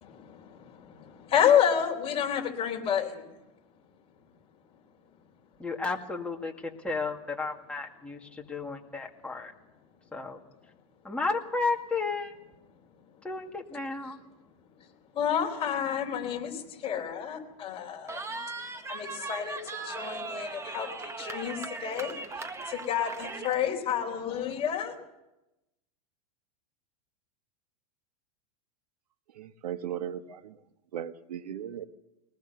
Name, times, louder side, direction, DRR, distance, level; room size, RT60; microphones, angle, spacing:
voice 1, 0.0-3.3 15.1-18.4 18.9-24.9, left 8 dB, 30° left, 4.0 m, -30 dB
voice 2, 5.6-9.5 10.1-10.4 11.0-12.4 13.2-14.2, left 3 dB, 5° left, 2.2 m, -33 dB
Cheering, 18.1-23.6, right 3 dB, 15° right, 1.5 m, -38 dB
voice 3, 29.4-30.6 30.9-31.9, right 10 dB, 90° right, 1.3 m, -37 dB
21.0 x 19.5 x 6.9 m
supercardioid pair, 130°, 20 cm